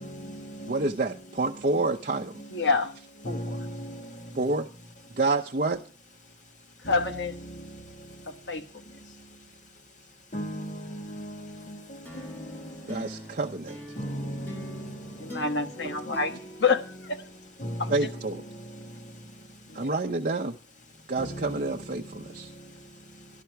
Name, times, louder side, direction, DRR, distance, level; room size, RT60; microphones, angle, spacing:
voice 1, 0.7-2.4 4.3-4.7 5.1-5.8 12.9-13.8 15.8-15.9 17.9-18.4 19.7-20.6 21.1-22.5, right 3 dB, 50° right, 0.7 m, -28 dB
voice 2, 2.5-2.9 3.2-3.4 6.9-7.3 8.3-8.6 15.2-17.2 17.8-18.1 19.7-19.9, left 4 dB, 90° left, 1.3 m, -28 dB
voice 3, 3.3-3.9 10.3-10.7 11.1-11.3 14.0-14.7 17.6-17.8, equal, 45° left, 1.9 m, -34 dB
sound 1, 12.0-17.7, left 1 dB, 10° left, 2.4 m, -44 dB
12.5 x 12.5 x 4.6 m
head